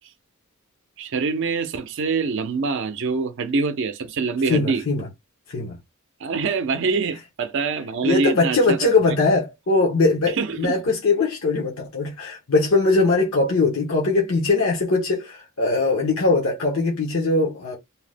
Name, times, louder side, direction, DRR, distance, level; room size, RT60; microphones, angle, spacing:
voice 1, 1.0-4.8 6.2-8.9 10.3-10.8, right 4 dB, 60° right, 0.5 m, -25 dB
voice 2, 4.5-5.1 5.5-5.8 8.0-17.8, left 3 dB, 70° left, 0.9 m, -21 dB
2.7 x 2.0 x 3.3 m
head